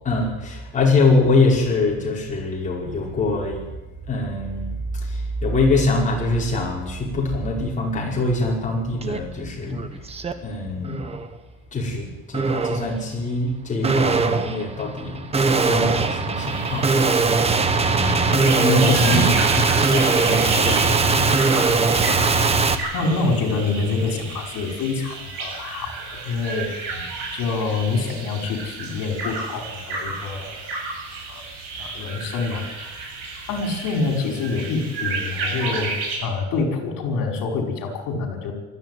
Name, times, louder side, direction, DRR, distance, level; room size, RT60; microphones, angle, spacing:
voice 1, 0.1-3.7 4.1-4.7 5.0-9.8 10.4-11.0 11.7-15.3 15.6-17.1 17.8-21.7 26.9-27.0, left 2 dB, 15° left, -3 dB, 5.3 m, -23 dB
sound 1, 9.0-9.2 9.6-10.3 10.8-11.3 12.3-12.9 13.8-22.7, right 4 dB, 15° right, 1.0 m, -20 dB
sound 2, 16.4-36.2, right 3 dB, 60° right, 7.9 m, -32 dB
voice 2, 22.9-27.0 27.3-30.7 31.3-31.4 31.8-33.1 33.5-38.5, left 3 dB, 50° left, 3 dB, 5.3 m, -26 dB
20.5 x 14.0 x 9.4 m, 1.1 s
cardioid pair, 170°, 43 cm